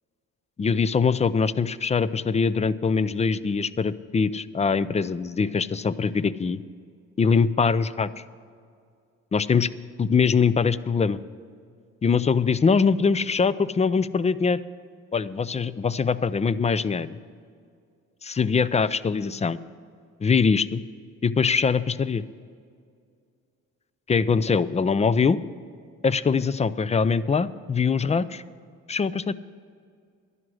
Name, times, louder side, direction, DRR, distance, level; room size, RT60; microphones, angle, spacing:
voice 1, 0.6-6.6 7.2-8.1 9.3-9.7 10.0-11.2 12.0-14.6 15.1-17.2 18.2-19.6 20.2-20.8 21.2-22.2 24.1-25.4 26.0-28.4 28.9-29.3, left 5 dB, 20° left, 16 dB, 0.4 m, -23 dB
11.5 x 11.0 x 6.3 m, 2.3 s
cardioid pair, 90°, 30 cm